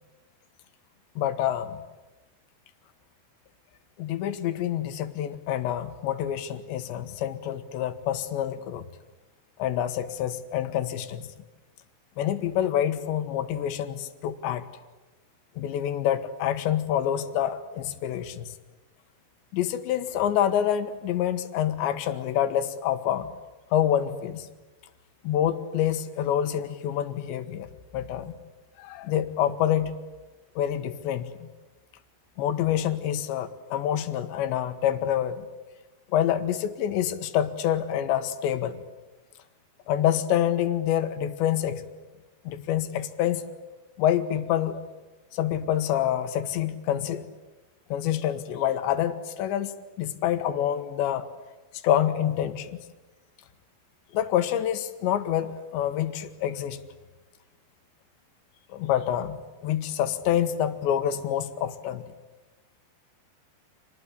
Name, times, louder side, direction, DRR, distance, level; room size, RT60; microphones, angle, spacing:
voice 1, 1.2-1.8 4.0-8.8 9.6-11.3 12.2-14.6 15.6-18.5 19.5-23.3 23.7-24.5 25.2-27.7 27.9-28.4 28.8-30.0 30.6-31.5 32.4-35.5 36.1-38.8 39.9-41.8 42.5-43.5 44.0-44.9 45.3-47.3 47.9-49.7 50.0-51.3 51.8-52.7 54.1-56.8 58.7-59.4 59.6-62.0, left 10 dB, 85° left, 10 dB, 3.7 m, -27 dB
28.0 x 20.0 x 9.9 m, 1.2 s
omnidirectional pair, 5.0 m